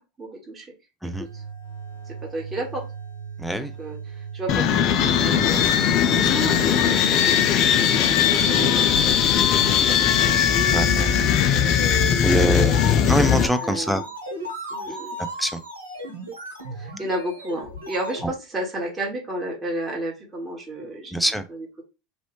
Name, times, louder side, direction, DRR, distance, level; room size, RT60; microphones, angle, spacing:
voice 1, 0.2-0.7 1.2-1.4 2.1-2.8 3.5-5.6 6.0-10.4 11.6-11.7 12.0-12.8 13.6-14.1 14.7-15.2 16.7-21.1 21.5-21.8, right 1 dB, 20° right, 1.4 m, -32 dB
sound 1, 1.1-18.3, right 2 dB, 90° right, 1.0 m, -35 dB
voice 2, 3.4-3.7 6.1-6.3 10.7-11.1 12.2-12.7 13.0-14.0 15.4-15.6 21.1-21.4, right 1 dB, ahead, 0.5 m, -24 dB
sound 2, 4.5-13.5, left 9 dB, 50° left, 0.4 m, -19 dB
3.1 x 2.7 x 3.1 m
figure-of-eight pair, 80°, 0 cm